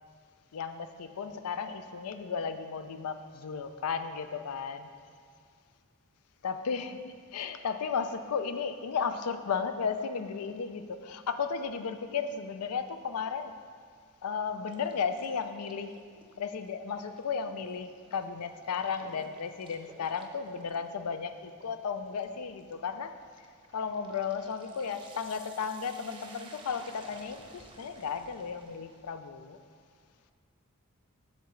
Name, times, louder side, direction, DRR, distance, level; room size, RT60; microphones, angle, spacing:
voice 1, 0.5-4.9 6.4-13.5 14.2-16.0 16.4-23.1 23.7-29.6, left 6 dB, 80° left, 9 dB, 0.4 m, -34 dB
sound 1, 14.7-29.2, right 3 dB, 25° right, 0.6 m, -55 dB
8.1 x 6.9 x 3.2 m, 2.1 s
head